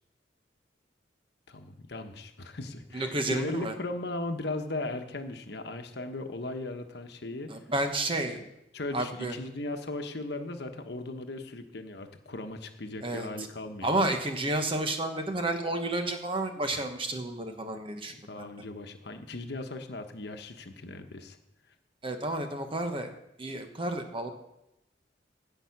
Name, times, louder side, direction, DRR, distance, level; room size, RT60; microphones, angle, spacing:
voice 1, 1.5-7.6 8.3-8.4 8.7-14.0 18.1-21.4, left 2 dB, 60° left, 7 dB, 1.1 m, -37 dB
voice 2, 2.9-3.7 7.5-8.4 8.9-9.3 13.0-13.3 13.8-18.4 22.0-23.1 23.4-24.3, right 2 dB, 30° right, 5 dB, 1.1 m, -31 dB
16.0 x 5.7 x 5.9 m, 0.87 s
head